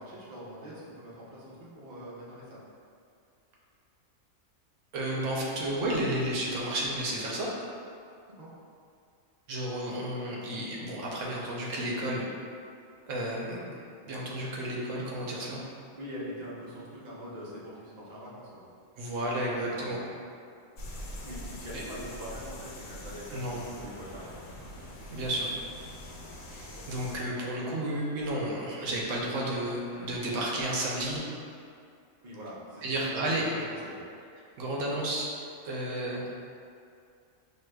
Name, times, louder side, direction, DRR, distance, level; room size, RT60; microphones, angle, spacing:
voice 1, 0.0-2.6 8.4-8.5 16.0-18.6 19.6-20.1 21.2-24.5 26.1-26.3 32.2-34.0, equal, 40° right, -7 dB, 0.8 m, -43 dB
voice 2, 4.9-7.5 9.5-12.3 13.1-13.8 14.1-15.6 19.0-20.0 21.7-21.8 23.3-23.6 25.1-25.5 26.5-31.2 32.8-33.4 34.6-35.3 35.6-36.3, right 1 dB, 75° right, -4 dB, 1.0 m, -32 dB
sound 1, 20.8-27.2, left 1 dB, 85° left, 1.0 m, -43 dB
6.1 x 2.7 x 2.2 m, 2.4 s
omnidirectional pair, 1.3 m